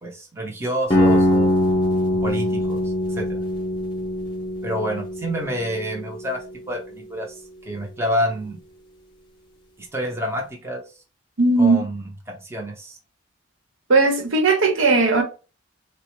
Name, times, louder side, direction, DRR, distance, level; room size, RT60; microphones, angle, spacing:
voice 1, 0.0-1.7 2.2-2.8 3.1-3.4 4.6-7.4 7.6-8.6 9.9-10.8 11.6-13.0, equal, 15° right, 0.6 m, -28 dB
sound 1, 0.9-6.7, left 1 dB, 25° left, 0.7 m, -22 dB
voice 2, 11.4-11.8 13.9-15.2, right 3 dB, 85° right, 0.9 m, -17 dB
4.0 x 2.1 x 3.0 m
head